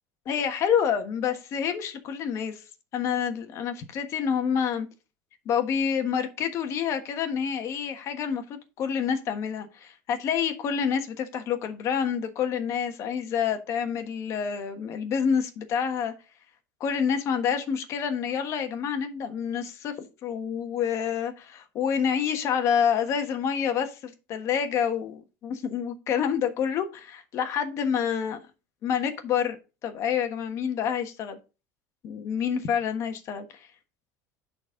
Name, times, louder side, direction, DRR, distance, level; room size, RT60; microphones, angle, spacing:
voice 1, 0.2-2.6 2.9-4.9 5.4-16.1 16.8-19.9 20.2-28.4 28.8-29.6 29.8-31.4 32.0-33.4, left 7 dB, 45° left, 1.4 m, -28 dB
10.5 x 4.2 x 3.8 m
cardioid pair, 135°, 7 cm